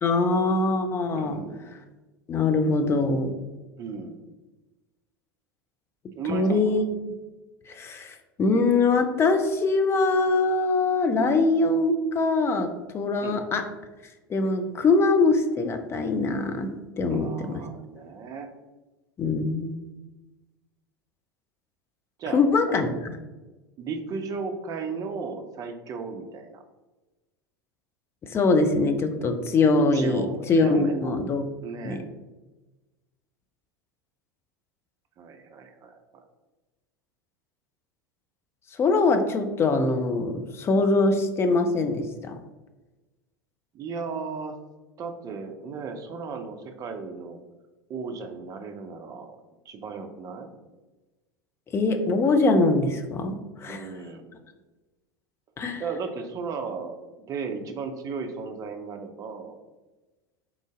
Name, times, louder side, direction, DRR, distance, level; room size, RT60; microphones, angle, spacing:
voice 1, 0.0-1.4 2.3-3.3 6.3-6.8 7.7-13.6 14.3-16.7 17.0-17.6 19.2-19.8 22.3-23.2 28.2-31.5 31.8-32.0 38.8-42.4 51.7-53.9 55.6-55.8, left 3 dB, 20° left, 6 dB, 0.5 m, -23 dB
voice 2, 1.1-1.7 3.8-4.2 6.2-6.8 13.2-13.4 17.1-18.5 22.2-23.0 23.8-26.6 29.8-31.2 31.6-32.0 35.2-36.2 43.7-44.5 45.0-47.4 47.9-49.4 49.7-50.5 53.7-54.3 55.8-59.6, right 5 dB, 30° right, 6 dB, 0.5 m, -35 dB
3.8 x 3.0 x 3.7 m, 1.2 s
figure-of-eight pair, 80°, 12 cm